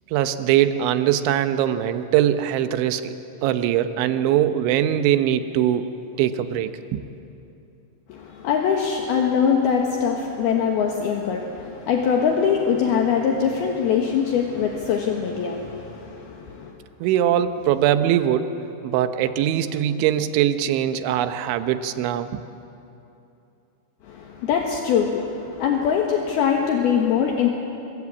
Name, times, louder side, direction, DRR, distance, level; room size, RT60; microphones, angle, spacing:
voice 1, 0.1-3.1 3.4-5.9 6.2-7.0 17.0-18.5 18.8-22.3, right 11 dB, 90° right, 10 dB, 3.3 m, -21 dB
voice 2, 8.1-16.7 24.0-27.5, left 7 dB, 65° left, 1 dB, 3.1 m, -22 dB
26.0 x 22.0 x 8.4 m, 2.8 s
omnidirectional pair, 5.2 m